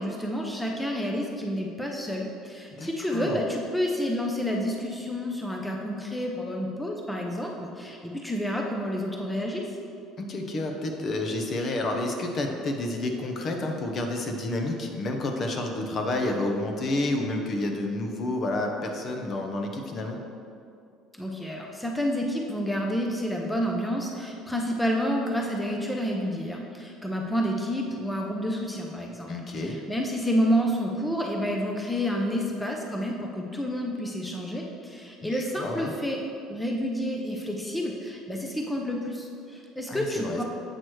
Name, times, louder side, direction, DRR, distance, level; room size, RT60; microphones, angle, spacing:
voice 1, 0.0-9.6 21.1-36.2 36.5-40.4, equal, 5° left, 0 dB, 0.6 m, -29 dB
voice 2, 2.7-3.4 10.2-20.2 29.3-29.8 35.2-35.9 39.9-40.4, left 2 dB, 40° left, 3 dB, 0.8 m, -30 dB
7.9 x 3.0 x 6.2 m, 2.5 s
cardioid pair, 110°, 0 cm